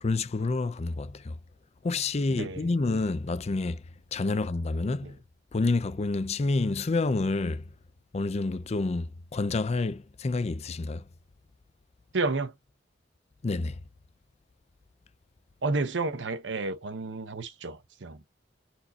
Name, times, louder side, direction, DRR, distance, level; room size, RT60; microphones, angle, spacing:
voice 1, 0.0-1.3 1.8-3.8 4.1-5.2 5.5-7.6 8.1-11.0 13.4-13.8, left 3 dB, 35° left, 0.5 m, -28 dB
voice 2, 2.3-2.7 4.3-4.4 5.0-5.1 12.1-12.5 15.6-18.3, right 3 dB, 80° right, 0.8 m, -31 dB
4.3 x 2.7 x 4.1 m
head